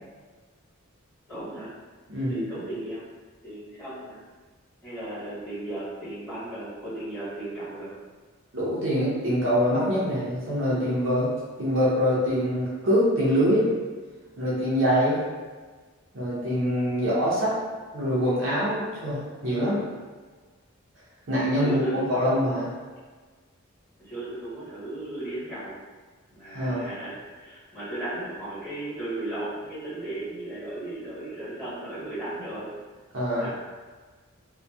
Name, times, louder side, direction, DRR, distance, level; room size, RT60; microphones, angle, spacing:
voice 1, 1.3-1.7 2.3-3.0 3.4-4.2 4.8-7.9 21.6-22.4 24.0-25.7 26.3-32.7 33.4-33.5, right 1 dB, 5° left, -14 dB, 1.3 m, -35 dB
voice 2, 2.1-2.4 8.5-11.3 11.6-13.7 14.4-15.2 16.1-17.5 17.9-19.8 21.3-21.8 22.1-22.7 26.5-26.9 33.1-33.5, equal, 60° right, -9 dB, 0.7 m, -24 dB
2.6 x 2.2 x 2.2 m, 1.4 s
head